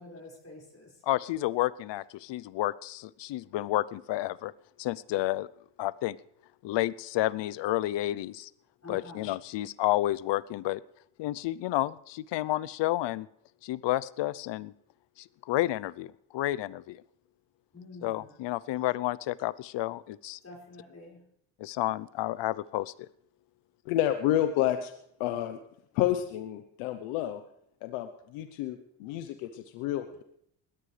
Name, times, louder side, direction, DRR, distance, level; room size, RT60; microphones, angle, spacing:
voice 1, 0.0-0.9 8.8-9.3 17.7-18.3 20.4-21.2, left 2 dB, 30° left, -2 dB, 5.6 m, -47 dB
voice 2, 1.0-4.5 4.8-5.5 5.8-6.2 6.6-8.5 8.9-10.8 11.2-13.3 13.6-14.7 15.2-17.0 18.0-20.4 21.6-23.1, left 16 dB, 60° left, 19 dB, 0.7 m, -30 dB
voice 3, 23.9-24.9 25.2-25.6 25.9-27.4 27.8-30.2, left 12 dB, 85° left, 9 dB, 1.0 m, -30 dB
21.0 x 17.5 x 3.3 m, 0.73 s
supercardioid pair, 80°, 49 cm